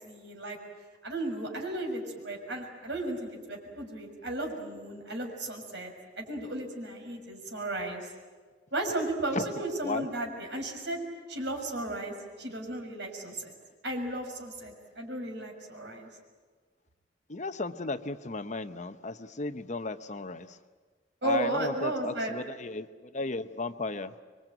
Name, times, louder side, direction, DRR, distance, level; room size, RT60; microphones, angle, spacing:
voice 1, 0.0-0.6 1.0-8.1 8.7-11.0 11.3-13.5 13.8-16.1 21.2-22.3, right 1 dB, 70° right, 2 dB, 6.3 m, -34 dB
voice 2, 17.3-20.6 21.2-24.1, left 3 dB, 40° left, 10 dB, 0.9 m, -35 dB
26.5 x 23.0 x 9.1 m, 1.5 s
head